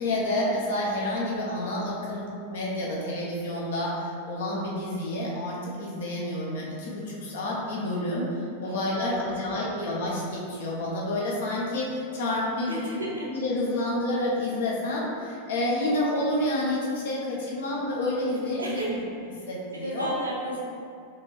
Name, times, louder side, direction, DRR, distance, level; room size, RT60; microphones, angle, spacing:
voice 1, 0.0-8.3 8.6-12.9 13.3-19.0 19.5-20.1, left 1 dB, 60° left, -4 dB, 0.8 m, -29 dB
voice 2, 8.6-9.9 12.7-13.3 18.6-19.0 19.4-19.5 19.7-20.6, right 1 dB, 80° right, -4 dB, 0.7 m, -34 dB
4.3 x 2.7 x 3.1 m, 2.5 s
figure-of-eight pair, 90°, 0 cm